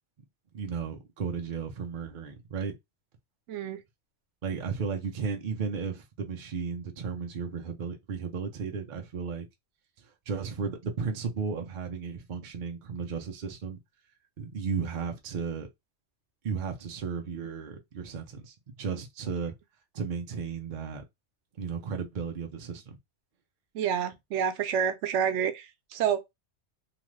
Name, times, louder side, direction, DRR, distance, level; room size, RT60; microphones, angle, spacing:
voice 1, 0.5-2.8 4.4-9.5 10.3-13.8 14.4-15.7 16.4-19.5 19.9-21.0 21.6-23.0, right 6 dB, 55° right, 0.6 m, -34 dB
voice 2, 3.5-3.8 23.7-26.3, right 8 dB, 90° right, 0.9 m, -29 dB
2.9 x 2.4 x 3.1 m
omnidirectional pair, 1.2 m